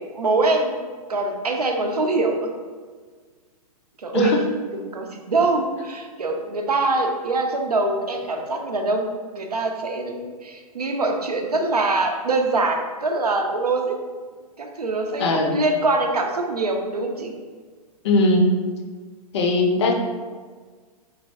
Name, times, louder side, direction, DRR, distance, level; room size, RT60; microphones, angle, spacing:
voice 1, 0.1-0.8 1.1-2.4 4.0-4.3 4.9-13.9 14.6-17.3, right 2 dB, 80° right, 3 dB, 0.5 m, -23 dB
voice 2, 4.1-4.4 8.4-8.5 15.2-15.6 18.0-18.5 19.3-19.9, left 2 dB, 45° left, 2 dB, 0.5 m, -19 dB
3.2 x 2.3 x 3.3 m, 1.5 s
figure-of-eight pair, 110°, 20 cm